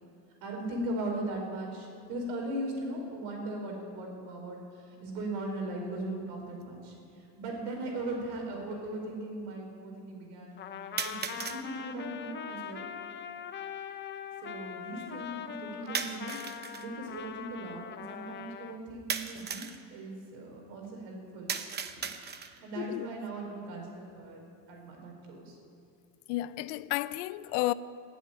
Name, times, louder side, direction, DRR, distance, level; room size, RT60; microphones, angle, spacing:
voice 1, 0.4-4.6 5.0-6.9 7.4-10.6 11.0-12.9 14.4-16.4 16.8-19.6 19.9-21.6 22.3-25.6, right 1 dB, 80° right, 4.6 m, -38 dB
sound 1, 6.6-6.7 7.7-7.8 11.0-11.6 15.9-16.9 19.1-19.8 21.5-22.7, right 6 dB, 20° right, 0.8 m, -36 dB
Trumpet, 10.6-18.8, left 8 dB, 25° left, 0.6 m, -42 dB
voice 2, 22.8-23.1 26.3-27.7, left 17 dB, 90° left, 0.6 m, -32 dB
16.0 x 8.2 x 9.9 m
cardioid pair, 140°, 45 cm